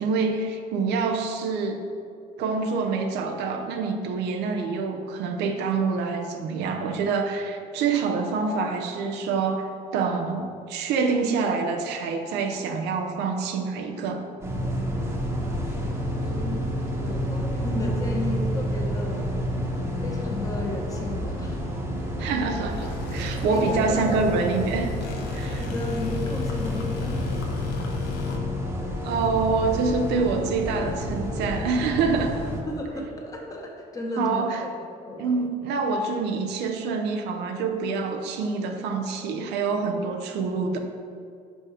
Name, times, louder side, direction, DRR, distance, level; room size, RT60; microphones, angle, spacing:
voice 1, 0.0-1.8 2.4-14.3 22.2-24.9 25.3-25.6 29.0-32.4 34.2-34.6 35.2-40.8, right 4 dB, 85° right, 3 dB, 0.7 m, -26 dB
sound 1, 14.4-32.6, left 1 dB, 15° right, 1.2 m, -29 dB
voice 2, 15.7-19.2 19.6-19.7 20.0-21.6 23.4-24.4 25.6-27.7 32.4-34.6 35.1-35.3 38.6-38.8, left 1 dB, 20° left, -1 dB, 1.3 m, -34 dB
sound 2, 22.7-28.4, left 2 dB, 85° left, 0.9 m, -42 dB
6.1 x 5.1 x 5.0 m, 2.3 s
cardioid pair, 110°, 17 cm